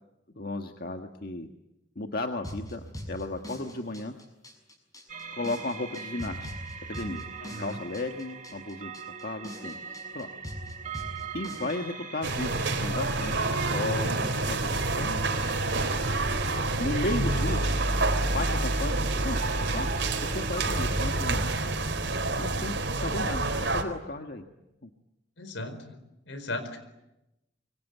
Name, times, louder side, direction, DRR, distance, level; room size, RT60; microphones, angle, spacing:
voice 1, 0.4-1.5 2.0-4.1 5.3-6.4 6.9-7.2 7.6-8.9 9.2-9.8 10.2-10.3 11.3-15.3 16.8-17.7 18.2-18.9 19.2-19.4 19.7-19.9 20.3-21.4 22.4-24.4 24.8-24.9, left 2 dB, 55° left, 5 dB, 1.6 m, -34 dB
sound 1, 2.4-11.8, equal, 20° left, 6.7 m, -42 dB
sound 2, 5.1-21.3, right 3 dB, 45° right, 2.2 m, -41 dB
voice 2, 7.4-7.8 25.4-26.0 26.3-26.8, left 2 dB, 85° left, 11 dB, 4.7 m, -36 dB
sound 3, 12.2-23.8, right 2 dB, 70° right, 3.8 m, -28 dB
26.5 x 24.0 x 9.3 m, 0.91 s
head